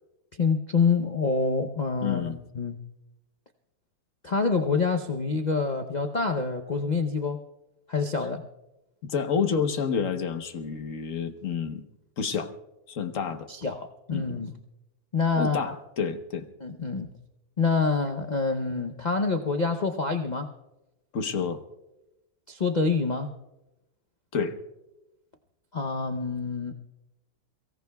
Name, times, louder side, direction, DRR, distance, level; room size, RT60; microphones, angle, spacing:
voice 1, 0.3-2.2 2.5-2.8 4.2-7.4 7.9-8.4 13.5-14.5 15.1-15.7 16.6-17.1 17.6-20.5 22.5-23.3 25.7-26.7, left 4 dB, 70° left, 5 dB, 0.4 m, -26 dB
voice 2, 2.0-2.4 9.0-11.8 12.2-12.5 12.9-13.5 14.1-14.3 15.3-16.5 21.1-21.6 24.3-24.6, left 6 dB, 50° left, 8 dB, 1.3 m, -29 dB
29.0 x 17.5 x 2.3 m, 0.98 s
omnidirectional pair, 2.0 m